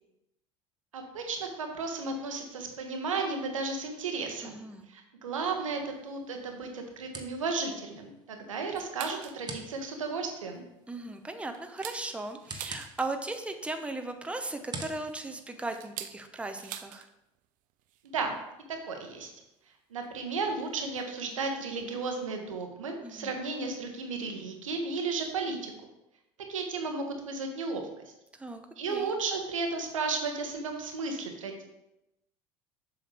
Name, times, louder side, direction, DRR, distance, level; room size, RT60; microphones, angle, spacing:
voice 1, 0.9-4.6 4.9-10.6 18.1-18.4 18.7-19.3 19.9-25.7 26.5-27.8 28.8-31.6, right 4 dB, 80° right, 4 dB, 1.1 m, -34 dB
voice 2, 4.4-4.9 10.9-17.1 23.0-23.3 28.3-28.6 28.9-29.1, right 2 dB, 5° right, 6 dB, 0.8 m, -37 dB
sound 1, 5.4-16.3, right 2 dB, 25° right, 1.3 m, -49 dB
sound 2, 8.8-9.4 9.9-10.0 10.4-10.6 11.1-13.4 14.5-17.1 17.4-17.5 17.8-18.1 19.0-19.1 20.0-20.1 21.0-21.1 21.5-21.6 21.7-21.9, right 12 dB, 55° right, 0.6 m, -45 dB
7.3 x 6.3 x 3.4 m, 0.88 s
figure-of-eight pair, 65°, 16 cm